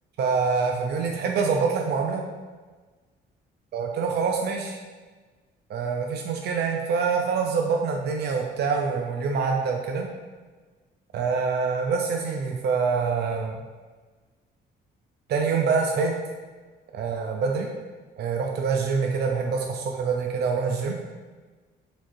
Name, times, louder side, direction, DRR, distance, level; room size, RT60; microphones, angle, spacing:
voice 1, 0.2-2.2 3.7-4.8 5.7-10.1 11.1-13.6 15.3-16.1 16.9-17.7 18.2-20.9, right 5 dB, 55° right, 1 dB, 0.5 m, -25 dB
4.3 x 2.9 x 2.6 m, 1.4 s
cardioid pair, 90°, 20 cm